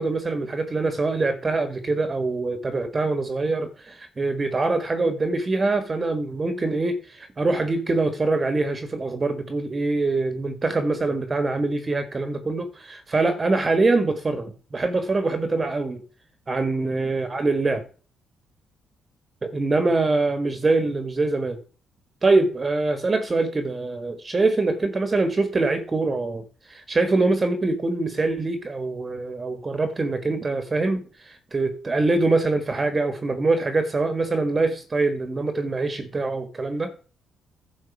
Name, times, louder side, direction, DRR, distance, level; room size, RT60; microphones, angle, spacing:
voice 1, 0.0-16.0 16.5-17.8 19.4-21.6 22.2-36.9, right 3 dB, 30° right, 1.4 m, -24 dB
11.0 x 4.3 x 7.1 m
cardioid pair, 90°, 0 cm